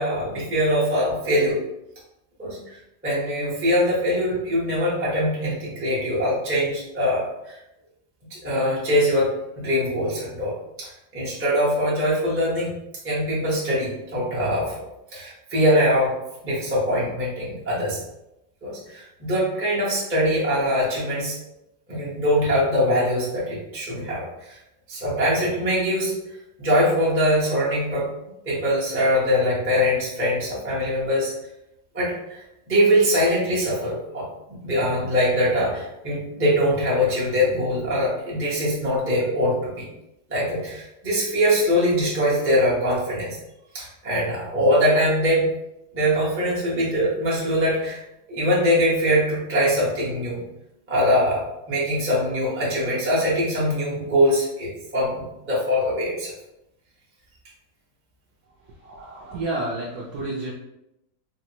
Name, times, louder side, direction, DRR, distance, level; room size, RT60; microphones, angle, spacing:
voice 1, 0.0-1.6 2.4-2.8 3.0-7.6 8.3-10.5 10.8-12.7 13.0-14.8 15.1-16.2 16.4-18.0 18.6-21.4 21.9-24.6 24.9-26.2 26.6-28.1 28.4-31.3 31.9-39.8 40.3-43.4 43.7-45.4 45.9-48.0 48.3-50.4 50.9-56.3 58.9-59.4, equal, 15° right, -8 dB, 0.5 m, -22 dB
voice 2, 59.2-60.5, right 2 dB, 70° right, -4 dB, 0.9 m, -29 dB
3.9 x 2.1 x 2.8 m, 0.87 s
omnidirectional pair, 2.1 m